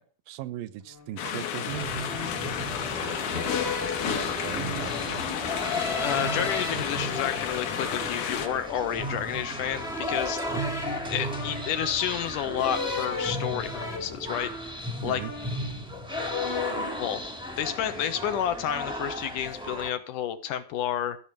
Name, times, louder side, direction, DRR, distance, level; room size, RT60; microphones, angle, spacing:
voice 1, 0.3-1.9 4.1-5.2 10.4-11.1 15.0-15.3, right 13 dB, 75° right, 2.4 m, -38 dB
sound 1, 0.9-1.1 2.0-2.5 3.3-4.7 5.5-6.7 7.3-8.8 9.6-12.0 12.6-14.8 15.1-15.8 16.1-17.0, left 3 dB, 50° left, 0.7 m, -36 dB
sound 2, 1.2-8.5, left 9 dB, 90° left, 3.3 m, -32 dB
sound 3, 1.7-19.9, equal, ahead, 1.2 m, -35 dB
voice 2, 6.0-10.4 11.1-15.2 17.0-17.2 17.6-21.2, left 10 dB, 70° left, 2.4 m, -30 dB
14.5 x 6.4 x 8.6 m
omnidirectional pair, 4.3 m